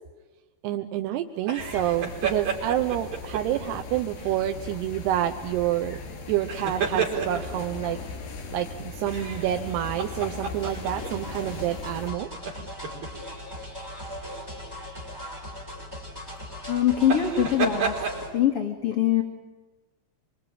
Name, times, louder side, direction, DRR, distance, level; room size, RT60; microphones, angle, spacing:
voice 1, 0.6-6.0 6.3-8.0 8.5-12.3, right 12 dB, 90° right, 6 dB, 3.1 m, -28 dB
sound 1, 1.4-3.6 4.2-4.4 6.3-7.6 9.1-11.1 11.5-11.6 12.3-13.1 14.2-14.4 17.0-18.2, right 6 dB, 60° right, 5.8 m, -31 dB
sound 2, 1.6-12.1, left 3 dB, 85° left, 5.8 m, -39 dB
sound 3, 10.6-18.3, left 1 dB, 5° right, 6.0 m, -39 dB
voice 2, 16.7-19.2, left 10 dB, 45° left, 2 dB, 2.3 m, -23 dB
26.5 x 24.5 x 8.9 m, 1.2 s
omnidirectional pair, 4.6 m